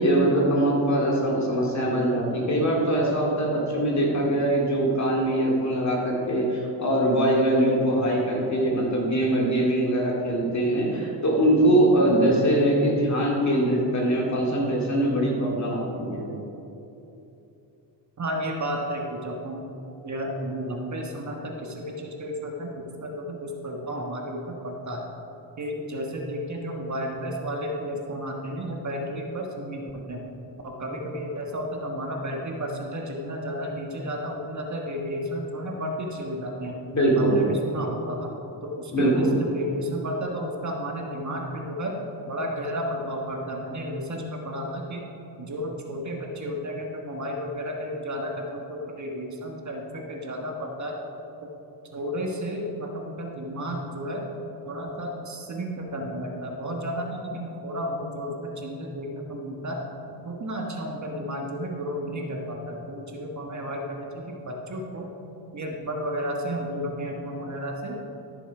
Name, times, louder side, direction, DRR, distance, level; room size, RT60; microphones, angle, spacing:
voice 1, 0.0-16.3 36.9-37.4 38.9-39.3, right 1 dB, 40° left, -2 dB, 2.5 m, -22 dB
voice 2, 18.2-19.6 20.0-22.7 23.0-25.1 25.6-30.2 30.6-36.8 37.1-38.3 38.6-41.9 42.3-45.0 45.4-51.0 51.9-54.2 54.6-59.8 60.2-65.1 65.5-68.0, equal, 40° right, 1 dB, 1.4 m, -32 dB
13.5 x 7.0 x 4.9 m, 3.0 s
cardioid pair, 100°, 44 cm